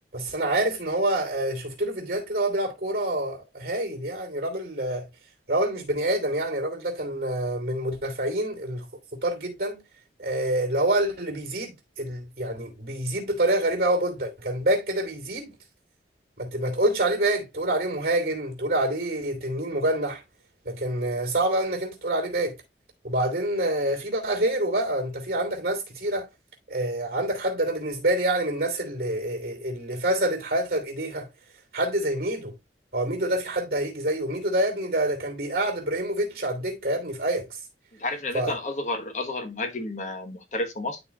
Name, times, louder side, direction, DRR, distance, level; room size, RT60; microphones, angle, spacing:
voice 1, 0.1-5.1 5.5-9.8 10.2-11.7 12.0-15.5 16.4-20.2 20.6-22.5 23.0-26.2 26.7-31.3 31.7-32.5 32.9-37.5 38.3-38.5, right 1 dB, 55° right, 2.8 m, -27 dB
voice 2, 38.0-41.0, left 2 dB, 45° left, 1.1 m, -31 dB
12.0 x 4.3 x 2.3 m
head